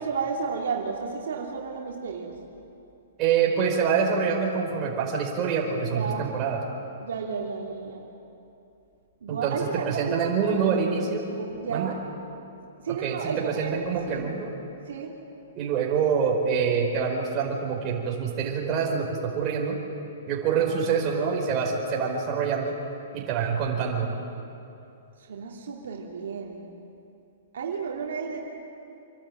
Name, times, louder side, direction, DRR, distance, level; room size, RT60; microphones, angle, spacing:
voice 1, 0.0-2.3 5.9-6.4 7.0-8.0 9.2-11.9 12.8-14.3 14.9-15.1 20.6-20.9 25.2-26.6 27.5-28.5, right 5 dB, 75° right, -1 dB, 2.8 m, -33 dB
voice 2, 3.2-6.6 9.3-11.2 11.7-11.9 12.9-14.5 15.5-19.8 20.3-22.7 23.1-24.2, right 6 dB, 30° right, -2 dB, 4.7 m, -26 dB
26.5 x 12.0 x 9.2 m, 2.8 s
hypercardioid pair, 145°, 0 cm